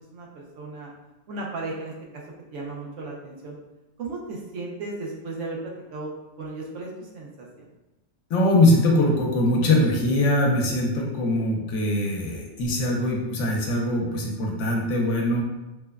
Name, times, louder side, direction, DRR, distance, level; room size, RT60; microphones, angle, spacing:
voice 1, 0.1-0.9 1.3-2.2 2.5-3.6 4.0-6.1 6.4-7.7, right 2 dB, 80° right, -2 dB, 1.0 m, -35 dB
voice 2, 8.3-15.4, left 1 dB, 80° left, 0 dB, 0.9 m, -22 dB
3.0 x 2.1 x 2.3 m, 1.0 s
omnidirectional pair, 1.2 m